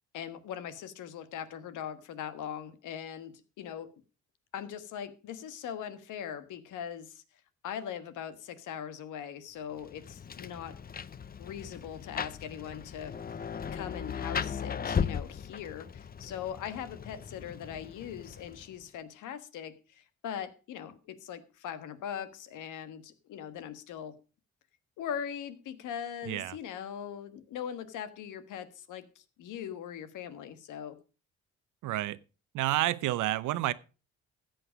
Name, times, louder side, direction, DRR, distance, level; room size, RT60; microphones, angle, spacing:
voice 1, 0.1-3.9 4.5-7.2 7.6-10.7 11.4-13.1 13.7-24.1 25.0-31.0, left 9 dB, 85° left, 1.4 m, -40 dB
Rain, 9.8-18.8, left 7 dB, 30° left, 0.6 m, -37 dB
voice 2, 26.2-26.6 31.8-32.2 32.5-33.7, right 15 dB, 85° right, 0.8 m, -29 dB
14.0 x 7.9 x 5.0 m
cardioid pair, 90°, 30 cm